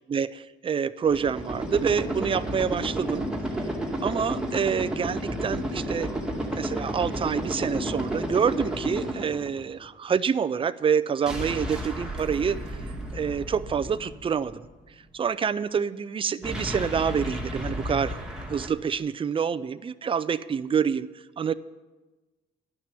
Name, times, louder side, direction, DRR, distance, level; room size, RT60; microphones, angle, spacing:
voice 1, 0.1-3.3 4.0-6.1 6.5-12.6 13.1-14.7 15.1-18.2 18.5-21.1 21.4-21.5, right 7 dB, 25° right, 15 dB, 0.4 m, -27 dB
sound 1, 1.0-9.8 11.3-14.6 16.4-18.7, right 1 dB, 5° right, 1.8 m, -32 dB
11.0 x 5.8 x 8.9 m, 1.2 s
cardioid pair, 90°, 20 cm